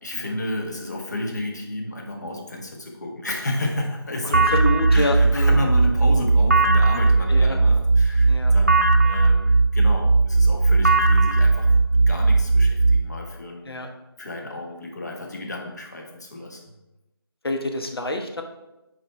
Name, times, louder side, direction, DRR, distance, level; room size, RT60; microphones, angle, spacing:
voice 1, 0.0-4.5 4.9-13.7 14.2-16.6, left 1 dB, 45° left, 1 dB, 1.4 m, -31 dB
sound 1, 4.3-13.0, right 3 dB, 40° right, 0.4 m, -17 dB
voice 2, 4.5-5.6 7.3-7.6 8.3-8.5 13.7-13.9 17.4-18.4, left 2 dB, 65° left, 4 dB, 1.2 m, -27 dB
10.0 x 4.7 x 3.4 m, 0.99 s
figure-of-eight pair, 175°, 13 cm